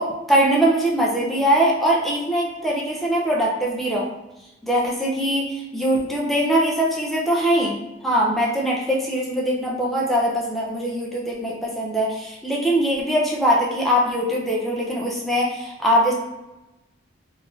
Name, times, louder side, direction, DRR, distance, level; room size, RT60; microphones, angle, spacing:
voice 1, 0.0-4.1 4.6-7.8 8.0-16.1, equal, ahead, -4 dB, 0.4 m, -22 dB
3.3 x 2.5 x 2.4 m, 1.0 s
head